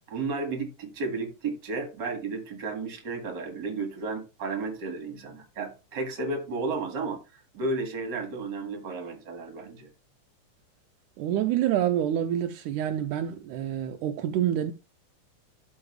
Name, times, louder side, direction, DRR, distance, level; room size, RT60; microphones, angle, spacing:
voice 1, 0.1-9.9, right 3 dB, 40° right, 2.2 m, -33 dB
voice 2, 11.2-14.7, right 11 dB, 80° right, 2.0 m, -27 dB
12.5 x 4.6 x 3.2 m
omnidirectional pair, 3.7 m